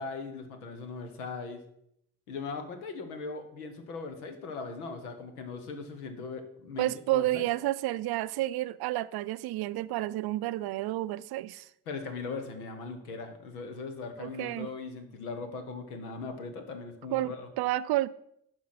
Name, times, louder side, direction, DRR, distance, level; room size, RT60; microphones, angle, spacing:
voice 1, 0.0-1.6 2.3-7.5 11.9-17.5, left 4 dB, 85° left, 1.1 m, -39 dB
voice 2, 6.8-11.7 14.2-14.7 17.1-18.1, right 16 dB, 60° right, 0.5 m, -30 dB
11.0 x 4.6 x 5.7 m
hypercardioid pair, 40°, 44 cm